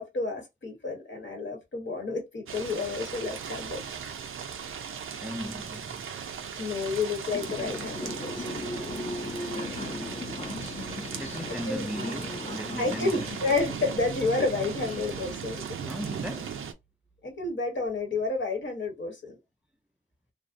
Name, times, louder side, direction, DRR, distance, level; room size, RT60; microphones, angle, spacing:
voice 1, 0.0-3.8 6.6-8.5 11.5-11.9 12.8-15.7 17.2-19.4, left 3 dB, 65° left, 1.1 m, -30 dB
sound 1, 2.5-16.7, right 7 dB, 85° right, 0.4 m, -38 dB
voice 2, 5.2-6.0 11.2-13.2 15.9-16.7, equal, 5° right, 0.4 m, -37 dB
sound 2, 7.3-15.3, left 2 dB, 30° left, 0.6 m, -38 dB
2.6 x 2.0 x 2.5 m
cardioid pair, 50°, 21 cm